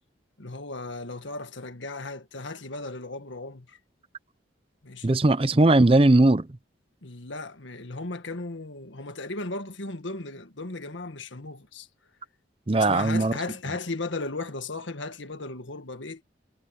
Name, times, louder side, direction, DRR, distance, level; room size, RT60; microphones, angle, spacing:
voice 1, 0.4-3.8 4.8-5.2 7.0-11.9 12.8-16.2, left 3 dB, 80° left, 1.7 m, -36 dB
voice 2, 5.0-6.5 12.7-13.3, right 2 dB, 30° right, 0.6 m, -19 dB
head